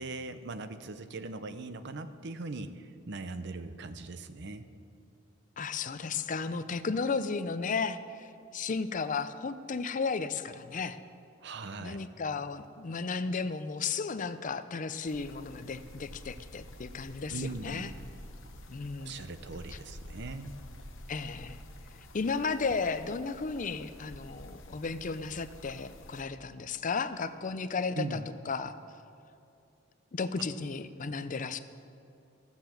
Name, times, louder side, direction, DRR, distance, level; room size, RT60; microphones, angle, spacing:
voice 1, 0.0-4.7 11.4-12.0 17.3-17.9 19.0-20.5 27.9-28.3, right 2 dB, 60° right, 10 dB, 0.7 m, -40 dB
voice 2, 5.6-11.0 11.8-17.9 18.7-19.3 19.7-19.8 21.1-21.6 22.1-28.2 28.5-28.8 30.1-31.6, left 4 dB, 40° left, 12 dB, 0.5 m, -34 dB
sound 1, 15.1-26.2, left 1 dB, 75° left, 1.0 m, -49 dB
13.5 x 7.3 x 7.8 m, 2.5 s
head